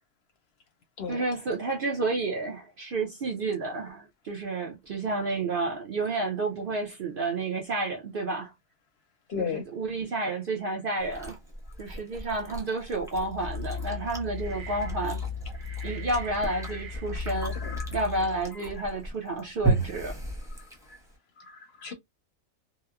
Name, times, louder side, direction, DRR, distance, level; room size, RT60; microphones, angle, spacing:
voice 1, 1.1-8.5 9.4-11.4 11.8-15.2 15.8-17.6 17.9-20.2, right 2 dB, 55° right, 0.6 m, -30 dB
voice 2, 9.3-9.7 14.8-14.9 15.7-15.9 16.4-16.8 17.4-17.9 18.5-18.8 19.4-19.5 20.5-21.0 21.4-21.9, left 6 dB, 60° left, 0.7 m, -38 dB
Chewing mastication, 11.0-21.2, right 3 dB, 5° right, 0.7 m, -35 dB
sound 1, 13.2-18.5, left 5 dB, 80° right, 1.1 m, -36 dB
2.9 x 2.0 x 2.3 m
omnidirectional pair, 1.4 m